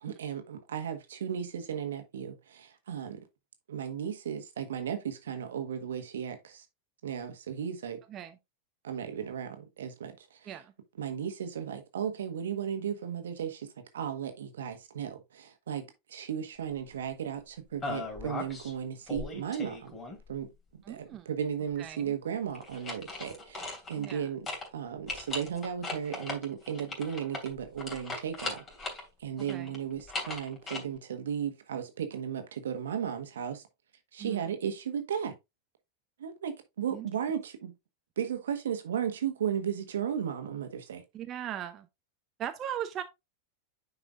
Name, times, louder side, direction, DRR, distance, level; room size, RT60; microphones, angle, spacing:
voice 1, 0.0-3.2 3.7-6.6 7.0-8.0 8.8-10.5 11.0-13.7 13.9-20.0 20.3-20.5 20.9-24.5 24.7-33.6 34.1-35.3 36.2-37.7 38.2-41.0, right 8 dB, 75° right, 1.3 m, -35 dB
sound 1, 17.8-18.7 19.1-20.4 22.5-24.2 24.5-24.7 25.1-29.0 29.4-30.8, left 2 dB, 25° left, 2.9 m, -38 dB
voice 2, 20.8-21.3 21.8-22.2 24.0-24.3 29.5-29.8 34.2-34.4 36.9-37.1 41.1-41.9 42.4-43.0, right 10 dB, 35° right, 0.7 m, -38 dB
9.7 x 4.8 x 2.5 m
figure-of-eight pair, 90°, 0 cm